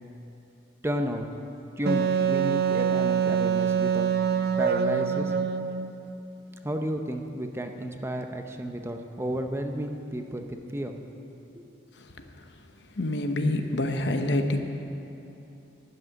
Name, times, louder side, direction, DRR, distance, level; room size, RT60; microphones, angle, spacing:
voice 1, 0.8-1.3 1.8-4.1 4.6-5.3 6.6-11.0 11.5-11.7, equal, 15° right, 5 dB, 0.6 m, -32 dB
Wind instrument woodwind instrument, 1.9-5.9, right 7 dB, 60° right, 0.5 m, -25 dB
voice 2, 13.0-14.6, left 1 dB, 75° left, 6 dB, 0.9 m, -26 dB
12.0 x 6.3 x 9.6 m, 2.9 s
head